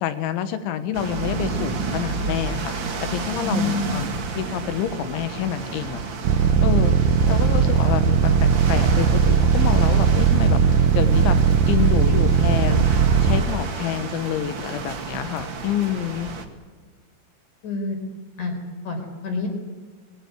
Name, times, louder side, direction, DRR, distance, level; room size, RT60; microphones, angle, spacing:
voice 1, 0.0-4.1 4.4-6.0 6.6-7.0 7.3-11.4 11.7-12.9 13.2-16.3, left 10 dB, 80° left, 11 dB, 3.7 m, -27 dB
sound 1, 0.9-16.4, right 4 dB, 60° right, 1.2 m, -31 dB
voice 2, 3.4-4.0 17.6-18.0 18.4-18.5 18.8-19.5, left 3 dB, 40° left, 4 dB, 5.5 m, -27 dB
sound 2, 6.2-13.4, right 7 dB, 80° right, 1.8 m, -18 dB
sound 3, 7.0-12.3, left 1 dB, 5° left, 3.7 m, -39 dB
22.0 x 18.0 x 9.6 m, 1.5 s
omnidirectional pair, 5.4 m